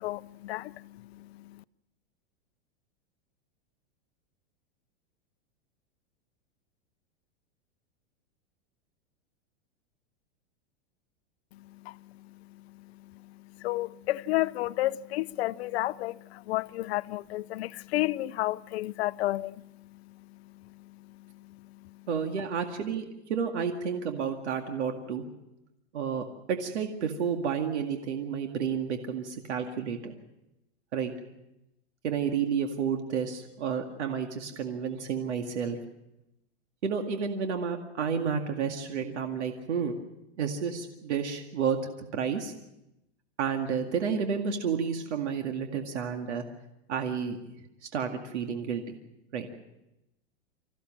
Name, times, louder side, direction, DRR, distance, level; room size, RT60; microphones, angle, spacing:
voice 1, 0.0-1.6 11.5-22.1, left 17 dB, 65° left, 0.7 m, -33 dB
voice 2, 22.1-25.2 25.9-30.1 30.9-31.1 32.0-35.8 36.8-40.0 40.4-41.8 42.1-42.5 43.4-46.4 46.9-47.4 47.9-49.0 49.3-49.5, right 7 dB, 90° right, 2.2 m, -31 dB
26.0 x 15.0 x 7.5 m
supercardioid pair, 145°, 33 cm